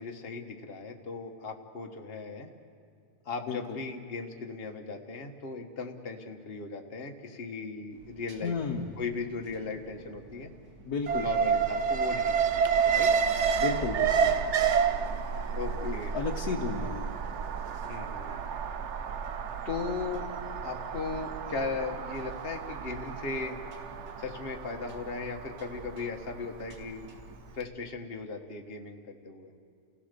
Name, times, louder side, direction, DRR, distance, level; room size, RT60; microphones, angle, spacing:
voice 1, 0.0-2.5 3.2-8.5 9.0-10.5 11.2-13.1 15.5-16.5 17.9-18.6 19.6-20.3 20.6-23.6 24.2-27.1 27.5-29.5, left 4 dB, 40° left, 4 dB, 1.5 m, -37 dB
voice 2, 3.5-3.8 8.4-8.9 10.9-11.3 13.6-14.4 15.8-17.1, left 5 dB, 65° left, 0 dB, 1.6 m, -33 dB
sound 1, 7.9-27.5, right 2 dB, 90° right, 2.8 m, -53 dB
Alarm, 11.1-27.2 27.5-27.6, right 6 dB, 55° right, 0.9 m, -30 dB
29.5 x 16.5 x 6.7 m, 2.3 s
omnidirectional pair, 1.8 m